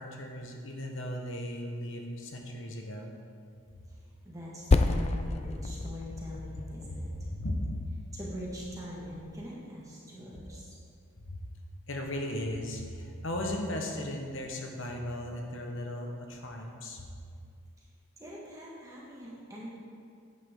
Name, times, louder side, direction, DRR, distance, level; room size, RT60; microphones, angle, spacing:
voice 1, 0.0-3.1 6.9-7.0 7.4-7.7 10.5-10.6 11.3-11.4 11.9-17.1, left 1 dB, 60° left, 2 dB, 1.2 m, -36 dB
voice 2, 4.2-7.1 8.1-10.8 17.8-17.9 18.2-19.7, equal, 15° right, -6 dB, 1.6 m, -43 dB
Percussion, 4.7-9.5, left 3 dB, 30° left, 0.3 m, -31 dB
10.5 x 9.0 x 3.8 m, 2.3 s
head